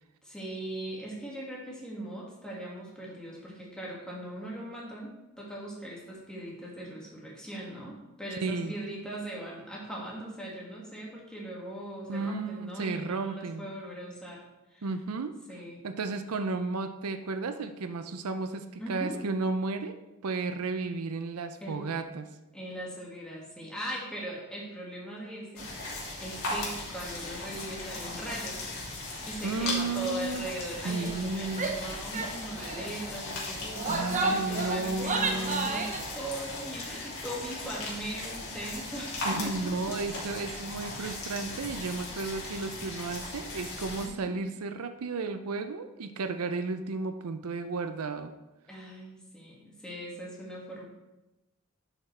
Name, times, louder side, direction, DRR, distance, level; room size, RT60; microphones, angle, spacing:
voice 1, 0.2-14.4 14.7-14.9 15.5-15.8 18.8-19.2 21.6-21.8 22.5-28.6 29.3-39.9 40.5-40.7 44.0-44.4 48.7-50.8, right 1 dB, 5° left, -4 dB, 2.0 m, -40 dB
voice 2, 8.4-8.8 12.1-13.7 14.8-15.3 15.8-20.0 20.2-22.3 29.4-30.4 30.8-31.7 33.9-35.7 39.2-48.3, right 3 dB, 85° right, 9 dB, 0.6 m, -33 dB
sound 1, 25.6-44.1, left 2 dB, 70° left, 2.7 m, -38 dB
Female speech woman speaking / Yell, 31.5-31.8 32.1-32.3 32.6-32.9 33.6-36.0, right 3 dB, 35° right, 0.9 m, -31 dB
11.0 x 5.9 x 3.3 m, 1.0 s
head